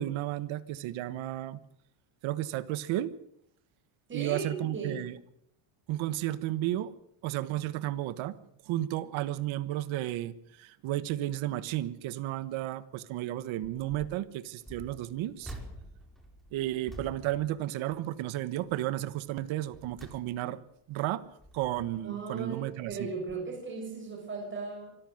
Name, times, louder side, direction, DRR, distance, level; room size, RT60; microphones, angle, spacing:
voice 1, 0.0-1.6 2.2-3.1 4.1-5.2 5.9-6.9 7.2-8.3 8.6-15.5 16.5-20.6 20.9-21.2 21.5-23.1, right 14 dB, 70° right, 15 dB, 1.4 m, -33 dB
voice 2, 4.1-5.1 22.0-24.9, right 4 dB, 25° right, 0 dB, 7.1 m, -37 dB
sound 1, 13.7-14.2 14.6-18.3 18.7-19.0 19.5-20.7 21.2-22.2 22.9-23.0 23.3-23.4, right 1 dB, ahead, 4.9 m, -49 dB
25.0 x 14.0 x 7.8 m, 0.73 s
cardioid pair, 145°, 50 cm